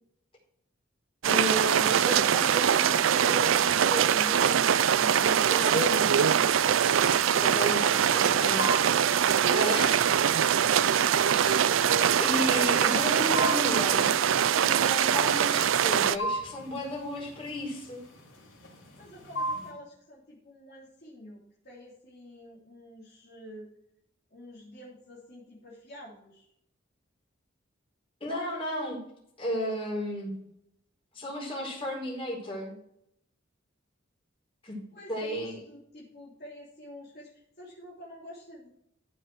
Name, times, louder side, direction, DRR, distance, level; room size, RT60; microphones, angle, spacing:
sound 1, 1.2-16.2, right 8 dB, 80° right, 0.4 m, -23 dB
voice 1, 1.3-6.3 7.3-10.1 11.3-14.2 14.5-18.0 28.2-29.0 29.4-30.3 31.1-32.8 34.6-34.8 35.1-35.6, left 1 dB, 30° left, -3 dB, 4.8 m, -34 dB
sound 2, 6.5-19.7, right 1 dB, 80° left, 4.7 m, -40 dB
voice 2, 9.5-9.9 19.0-23.7 24.3-26.5 34.9-38.7, equal, 50° left, -7 dB, 3.3 m, -48 dB
14.0 x 6.0 x 4.7 m, 0.75 s
head